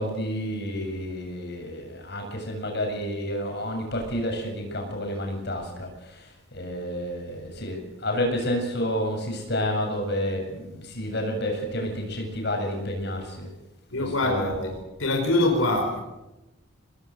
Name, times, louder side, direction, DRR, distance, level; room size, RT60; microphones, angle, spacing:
voice 1, 0.0-13.5 14.0-14.7, equal, 55° left, 7.8 m, -30 dB
voice 2, 13.9-16.0, left 2 dB, 90° left, 4.7 m, -24 dB
26.0 x 19.5 x 7.9 m
head